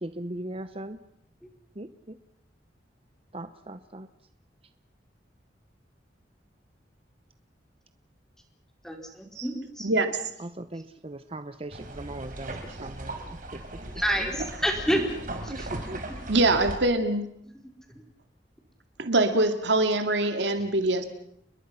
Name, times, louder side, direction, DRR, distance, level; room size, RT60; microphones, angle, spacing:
voice 1, 0.0-1.0 1.8-2.2 3.3-4.1 10.4-13.2 13.5-13.8 14.1-14.3 15.5-16.0, right 1 dB, 30° right, 11 dB, 0.9 m, -39 dB
voice 2, 8.8-9.9 14.0-15.1 15.4-15.7, equal, 5° left, 2 dB, 4.3 m, -28 dB
voice 3, 9.8-10.2 16.3-17.3 19.0-21.1, right 2 dB, 80° right, 7 dB, 2.4 m, -24 dB
sound 1, 11.7-16.8, right 1 dB, 50° right, 4.3 m, -38 dB
30.0 x 21.5 x 5.8 m, 0.70 s
head